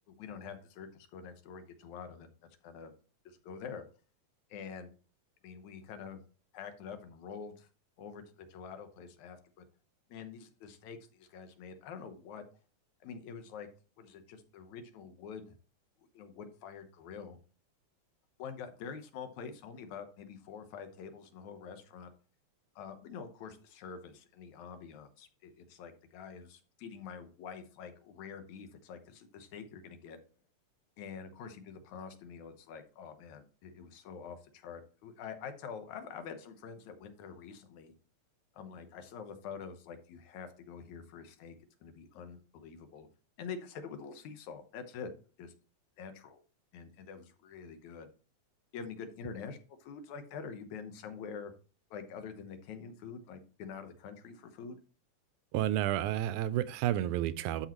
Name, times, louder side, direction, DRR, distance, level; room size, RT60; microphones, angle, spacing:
voice 1, 0.1-2.3 2.6-2.9 3.3-3.9 4.5-4.9 5.4-6.2 6.5-7.7 8.0-9.7 10.1-12.4 13.0-13.7 14.0-15.6 16.1-17.4 18.4-22.1 22.8-30.2 31.0-37.9 38.5-43.1 43.4-45.1 45.4-45.5 46.0-46.4 46.7-48.1 48.7-51.5 51.9-54.8, left 6 dB, 75° left, 2.3 m, -46 dB
voice 2, 55.5-57.7, right 12 dB, 85° right, 2.0 m, -31 dB
12.5 x 5.0 x 3.0 m
omnidirectional pair, 3.4 m